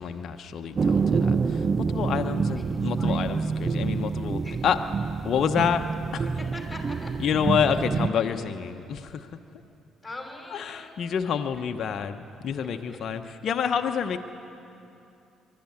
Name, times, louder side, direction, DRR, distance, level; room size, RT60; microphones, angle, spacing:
voice 1, 0.0-4.8 5.2-5.8 6.1-6.3 7.2-9.3 10.5-14.2, left 7 dB, 60° left, 6 dB, 0.9 m, -28 dB
sound 1, 0.8-8.1, right 5 dB, 40° right, 0.6 m, -27 dB
voice 2, 2.7-3.3 4.4-4.6 6.5-7.1 10.0-10.9 12.7-13.0, left 2 dB, 10° left, 1 dB, 5.4 m, -42 dB
22.5 x 12.5 x 9.7 m, 2.7 s
hypercardioid pair, 55°, 0 cm